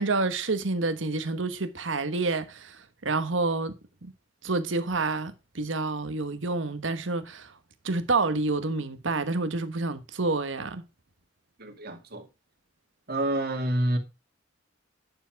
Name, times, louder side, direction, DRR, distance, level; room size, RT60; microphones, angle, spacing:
voice 1, 0.0-3.8 4.0-4.1 4.4-7.5 7.8-10.8, right 3 dB, 75° right, 1.3 m, -28 dB
voice 2, 11.6-12.3 13.1-14.0, right 1 dB, 55° right, 2.3 m, -28 dB
10.0 x 7.1 x 4.7 m
head